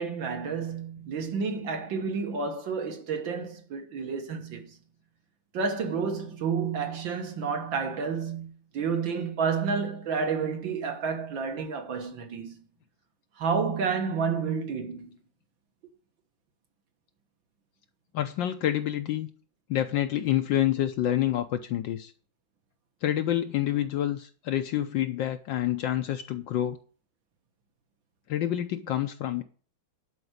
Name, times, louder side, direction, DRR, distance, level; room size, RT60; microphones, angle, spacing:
voice 1, 0.0-4.8 5.5-12.5 13.4-15.2, right 5 dB, 70° right, 2.1 m, -30 dB
voice 2, 18.1-19.3 19.7-22.1 23.0-26.8 28.3-29.4, left 12 dB, 75° left, 1.4 m, -27 dB
11.0 x 4.6 x 7.9 m
omnidirectional pair, 2.2 m